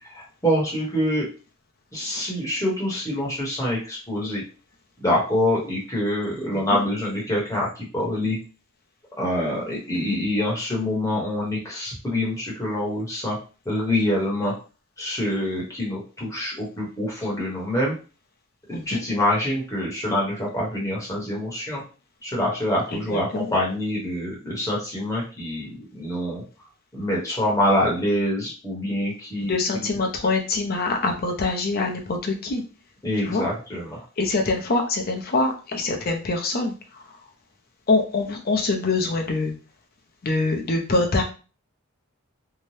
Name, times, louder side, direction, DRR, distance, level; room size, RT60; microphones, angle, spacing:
voice 1, 0.1-1.3 1.9-4.4 5.0-8.4 9.2-13.4 13.6-14.5 15.0-17.9 18.7-21.8 22.2-26.4 26.9-29.9 33.0-34.0, left 1 dB, 15° left, -4 dB, 0.9 m, -25 dB
voice 2, 18.7-19.0 22.9-23.5 29.5-32.6 33.2-33.4 34.2-36.7 37.9-39.5 40.2-41.2, left 3 dB, 45° left, 2 dB, 0.5 m, -24 dB
2.7 x 2.1 x 3.1 m, 0.35 s
head